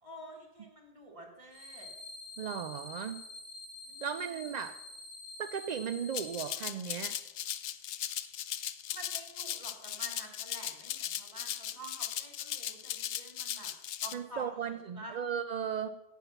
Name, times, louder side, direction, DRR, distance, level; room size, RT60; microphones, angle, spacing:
voice 1, 0.0-1.9 3.9-4.6 8.9-13.7 14.0-15.2, right 1 dB, 25° right, -1 dB, 2.2 m, -49 dB
sound 1, 1.5-6.5, left 2 dB, 35° left, 3.5 m, -47 dB
voice 2, 2.4-3.2 4.0-4.8 5.4-7.2 14.1-15.9, right 8 dB, 60° right, 10 dB, 0.4 m, -36 dB
Rattle (instrument), 6.1-14.1, left 11 dB, 75° left, 0.9 m, -38 dB
16.0 x 5.9 x 5.8 m, 0.94 s
omnidirectional pair, 1.2 m